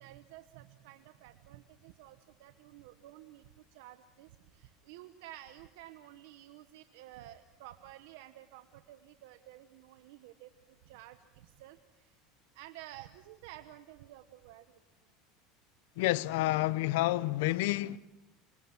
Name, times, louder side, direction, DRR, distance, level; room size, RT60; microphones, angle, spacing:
voice 1, 0.0-12.2 12.5-14.8, right 14 dB, 80° right, 1.1 m, -52 dB
voice 2, 16.0-18.0, left 17 dB, 80° left, 0.8 m, -29 dB
26.0 x 25.5 x 6.1 m
supercardioid pair, 135°, 0 cm